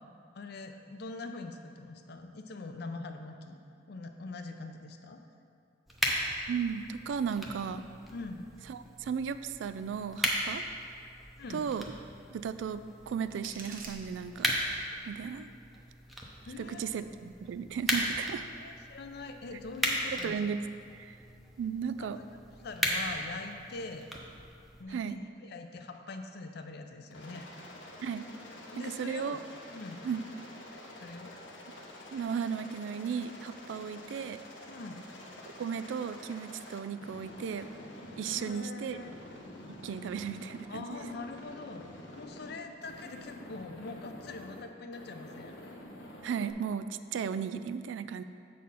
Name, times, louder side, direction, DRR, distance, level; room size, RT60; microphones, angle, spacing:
voice 1, 0.3-3.6 3.9-5.2 8.1-8.4 10.5-10.6 11.4-11.6 16.5-17.0 18.6-20.4 22.0-22.2 22.6-24.1 24.8-27.4 28.7-29.4 29.7-30.0 31.0-31.3 34.7-35.0 38.3-39.1 40.7-41.9 42.2-45.6, left 3 dB, 60° left, 6 dB, 0.5 m, -43 dB
sound 1, 5.9-24.8, equal, ahead, 0.7 m, -37 dB
voice 2, 6.5-7.8 8.7-10.6 11.5-11.9 12.3-14.6 15.0-15.5 16.6-18.4 20.2-20.6 20.9-21.2 21.6-22.2 24.9-25.2 28.0-28.3 28.8-29.4 30.0-30.2 32.1-34.4 35.6-37.7 38.2-39.0 39.7-40.9 46.2-48.2, right 7 dB, 90° right, 12 dB, 0.3 m, -35 dB
sound 2, 12.8-14.8, right 3 dB, 50° right, 0.8 m, -49 dB
Aircraft, 27.1-38.6 38.9-40.7 40.9-42.5 42.8-44.6 44.9-46.5, left 1 dB, 85° left, 0.9 m, -48 dB
7.5 x 4.2 x 5.5 m, 2.4 s
head